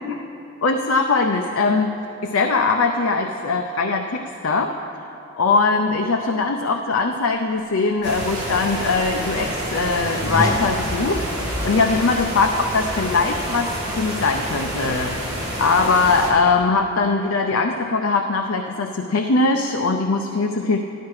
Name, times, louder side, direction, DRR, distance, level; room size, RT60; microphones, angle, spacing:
voice 1, 0.6-4.7 5.4-15.2 15.6-20.8, left 3 dB, 65° left, 4 dB, 0.6 m, -21 dB
sound 1, 8.0-16.3, equal, 20° right, 2.4 m, -28 dB
sound 2, 8.9-13.9, equal, 15° left, 1.7 m, -33 dB
13.5 x 12.0 x 4.8 m, 2.9 s
head